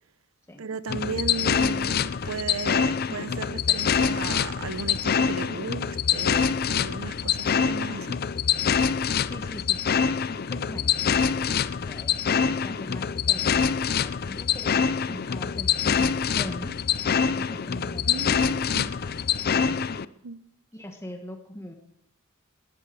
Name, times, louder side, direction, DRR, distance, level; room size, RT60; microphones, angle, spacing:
voice 1, 0.6-8.2 18.1-18.9 20.2-20.4, right 4 dB, 80° right, 15 dB, 0.8 m, -35 dB
sound 1, 0.9-20.0, left 7 dB, 50° left, 0.5 m, -25 dB
voice 2, 9.2-19.9 20.7-21.7, equal, 15° left, 3 dB, 1.3 m, -42 dB
18.5 x 13.5 x 4.8 m, 0.77 s
head